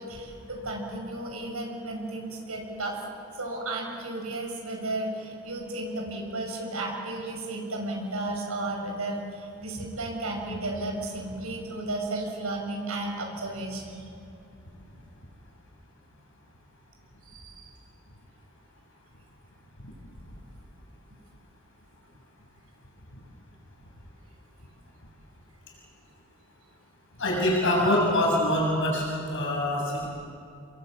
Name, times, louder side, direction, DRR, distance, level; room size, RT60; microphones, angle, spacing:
voice 1, 0.0-3.0 3.3-14.1 17.3-17.7, right 2 dB, 85° right, 1 dB, 6.9 m, -33 dB
voice 2, 27.2-29.0 29.3-30.1, left 1 dB, 60° left, -2 dB, 7.5 m, -24 dB
29.5 x 22.0 x 8.6 m, 2.5 s
head